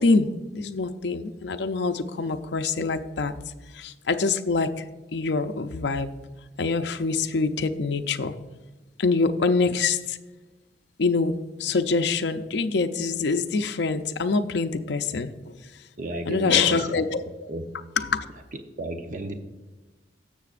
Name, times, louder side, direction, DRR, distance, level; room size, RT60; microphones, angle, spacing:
voice 1, 0.0-3.3 3.7-4.8 5.1-6.1 6.6-8.3 9.0-10.2 11.0-15.5 16.3-17.5 18.0-18.3, left 4 dB, 65° left, 7 dB, 0.5 m, -25 dB
voice 2, 16.0-17.2 17.5-17.6 18.8-19.4, right 1 dB, 45° right, 5 dB, 0.7 m, -33 dB
17.5 x 6.8 x 2.5 m, 1.2 s
head